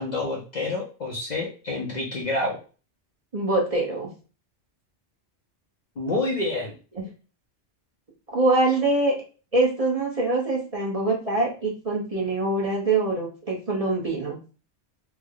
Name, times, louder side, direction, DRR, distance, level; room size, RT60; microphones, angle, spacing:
voice 1, 0.0-2.6 6.0-6.8, left 2 dB, 50° left, -1 dB, 0.6 m, -28 dB
voice 2, 3.3-4.1 8.3-9.1 9.5-14.4, right 2 dB, 35° right, -2 dB, 0.8 m, -24 dB
3.4 x 2.1 x 3.5 m, 0.35 s
omnidirectional pair, 1.2 m